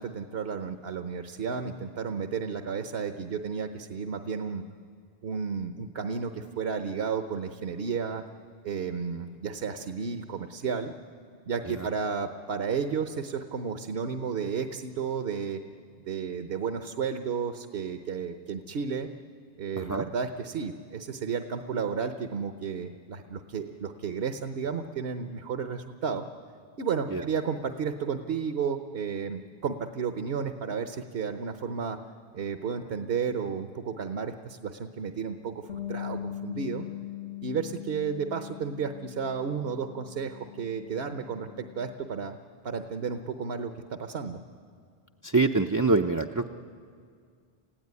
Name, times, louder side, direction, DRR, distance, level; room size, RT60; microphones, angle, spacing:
voice 1, 0.0-4.6 5.2-8.2 8.6-10.9 11.5-15.6 16.1-19.1 19.6-26.2 26.8-32.0 32.3-36.8 37.4-42.4 42.6-44.4, right 6 dB, 65° right, 8 dB, 1.1 m, -32 dB
voice 2, 19.8-20.1 27.1-27.2 45.2-46.5, right 3 dB, 25° right, 3 dB, 0.4 m, -25 dB
Bass guitar, 35.7-41.9, left 12 dB, 85° left, 1.6 m, -41 dB
29.0 x 16.0 x 9.6 m, 2.2 s
omnidirectional pair, 1.1 m